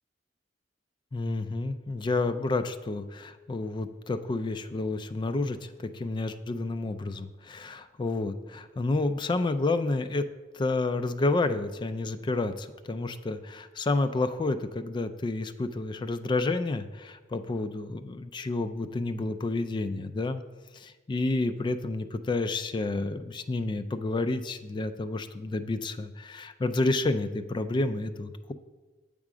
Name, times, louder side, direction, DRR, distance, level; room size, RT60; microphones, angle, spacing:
voice 1, 1.1-10.2 10.5-20.4 20.7-28.5, left 2 dB, 25° left, 10 dB, 0.3 m, -30 dB
7.4 x 3.6 x 4.9 m, 1.3 s
head